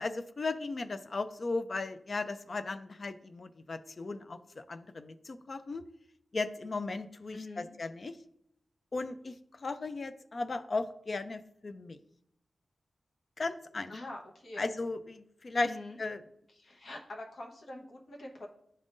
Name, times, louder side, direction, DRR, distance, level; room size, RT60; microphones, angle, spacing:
voice 1, 0.0-5.8 6.3-8.2 8.9-9.3 9.6-12.0 13.4-13.9 14.6-15.7 16.0-16.2, left 3 dB, 45° left, 11 dB, 0.4 m, -36 dB
voice 2, 7.3-7.7 13.9-14.6 15.6-16.0 16.6-18.5, left 2 dB, 70° left, -1 dB, 1.2 m, -45 dB
11.0 x 3.6 x 2.6 m, 0.76 s
wide cardioid pair, 125°, 0 cm